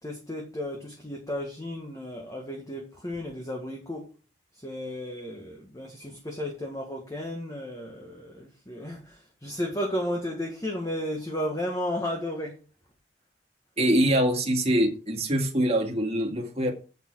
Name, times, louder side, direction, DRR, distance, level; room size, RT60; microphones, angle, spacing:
voice 1, 0.0-4.1 4.5-12.6, left 1 dB, 20° left, 0 dB, 1.7 m, -33 dB
voice 2, 13.8-16.7, right 1 dB, 35° right, 0 dB, 2.1 m, -24 dB
8.4 x 6.8 x 4.7 m, 0.34 s
head